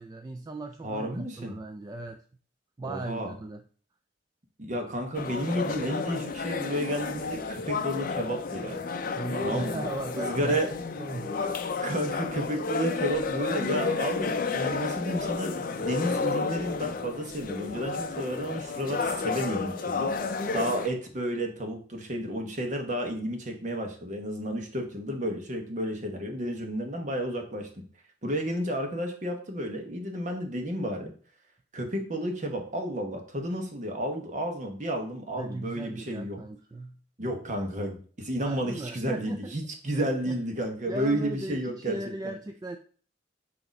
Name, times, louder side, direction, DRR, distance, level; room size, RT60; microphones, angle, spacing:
voice 1, 0.0-2.2 2.8-3.6 9.1-10.6 11.0-11.4 35.4-37.0 38.4-39.6 39.9-40.4 40.9-42.8, right 2 dB, 20° right, 5 dB, 0.3 m, -37 dB
voice 2, 0.8-1.5 2.8-3.3 4.6-8.8 9.4-9.8 10.2-10.7 11.8-20.3 20.5-27.7 28.2-31.1 31.7-36.4 37.2-42.0, equal, 40° right, 3 dB, 1.2 m, -32 dB
sound 1, 5.1-20.9, left 4 dB, 50° left, 0.6 m, -31 dB
6.1 x 2.9 x 5.2 m, 0.43 s
head